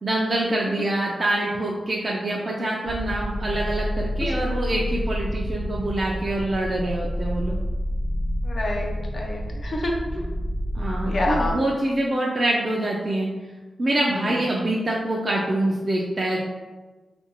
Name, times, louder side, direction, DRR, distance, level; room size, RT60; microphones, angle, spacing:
voice 1, 0.0-7.6 10.7-13.3 13.8-16.4, right 1 dB, 45° right, -3 dB, 0.3 m, -25 dB
sound 1, 2.8-11.5, equal, 80° left, 1.0 m, -28 dB
voice 2, 8.4-10.2 11.0-11.6 14.2-14.3, left 1 dB, 50° left, 0 dB, 0.4 m, -28 dB
2.5 x 2.2 x 2.8 m, 1.2 s
wide cardioid pair, 80°, 0 cm